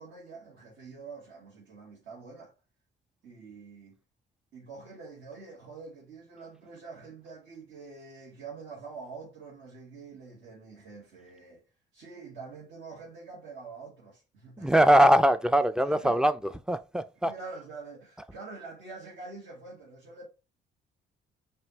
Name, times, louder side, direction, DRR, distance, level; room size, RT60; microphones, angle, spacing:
voice 1, 0.0-2.5 3.2-4.0 4.5-11.6 11.9-14.7 15.8-16.2 17.2-20.3, right 4 dB, 70° right, 1.8 m, -46 dB
voice 2, 14.6-16.3 16.7-17.3, right 1 dB, 5° right, 0.3 m, -21 dB
5.5 x 2.7 x 3.0 m
cardioid pair, 90°, 20 cm